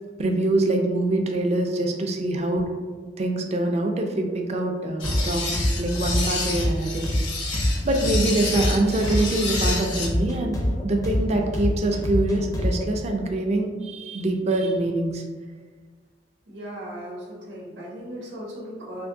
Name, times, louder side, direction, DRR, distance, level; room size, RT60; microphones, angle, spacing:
voice 1, 0.2-2.7 3.2-5.5 5.8-7.0 7.8-15.2, right 2 dB, 40° right, 3 dB, 0.4 m, -24 dB
sound 1, 5.0-10.1, left 3 dB, 85° left, 0.7 m, -30 dB
sound 2, 5.0-13.0, equal, 20° left, 0.5 m, -25 dB
voice 2, 16.5-19.1, equal, 90° right, -4 dB, 0.8 m, -37 dB
3.4 x 2.5 x 2.6 m, 1.5 s
head